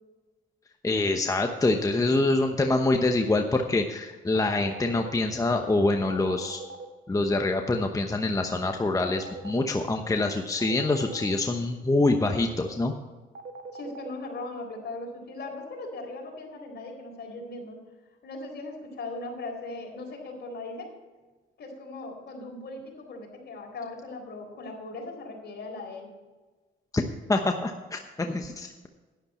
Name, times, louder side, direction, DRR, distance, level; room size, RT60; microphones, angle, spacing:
voice 1, 0.8-6.6 7.1-12.9 26.9-27.0 27.3-28.9, left 2 dB, 15° left, 4 dB, 1.0 m, -25 dB
sound 1, 4.3-5.1 6.1-6.9 8.8-9.6 10.6-11.4 13.3-14.1, right 3 dB, 55° right, 1.5 m, -40 dB
voice 2, 13.7-17.8 18.2-20.9 21.6-26.1, left 2 dB, 55° left, 1 dB, 4.2 m, -39 dB
11.5 x 11.0 x 4.3 m, 1.3 s
cardioid pair, 90°, 20 cm